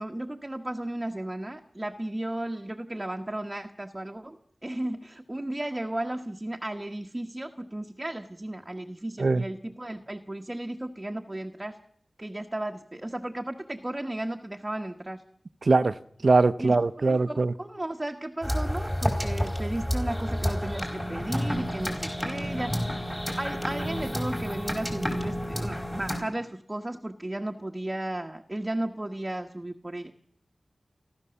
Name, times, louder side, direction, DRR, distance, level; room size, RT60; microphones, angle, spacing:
voice 1, 0.0-11.8 12.2-15.3 16.6-23.0 23.3-30.1, right 1 dB, 20° right, 3 dB, 1.4 m, -34 dB
voice 2, 15.6-15.9 16.2-17.5, right 3 dB, 65° right, 14 dB, 0.8 m, -21 dB
sound 1, 18.4-26.2, equal, 10° left, 4.6 m, -30 dB
30.0 x 12.5 x 7.0 m, 0.67 s
wide cardioid pair, 60°, 0 cm